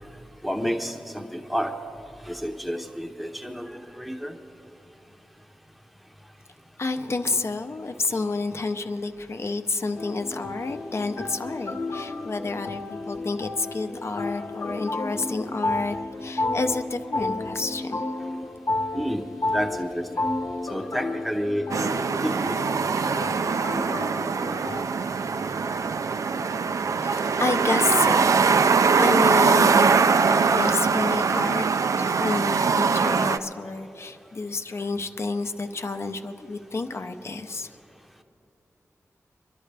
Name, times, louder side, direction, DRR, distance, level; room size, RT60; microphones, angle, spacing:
voice 1, 0.4-1.8 2.3-4.4 18.9-20.1 20.7-22.7, equal, ahead, 4 dB, 0.8 m, -30 dB
voice 2, 6.8-18.0 27.0-31.6 32.0-37.7, left 3 dB, 50° left, 7 dB, 0.7 m, -29 dB
sound 1, 10.0-24.8, left 2 dB, 70° left, 1.0 m, -32 dB
sound 2, 21.7-33.4, right 5 dB, 70° right, 0.4 m, -22 dB
23.5 x 12.0 x 3.3 m, 2.8 s
wide cardioid pair, 100°, 6 cm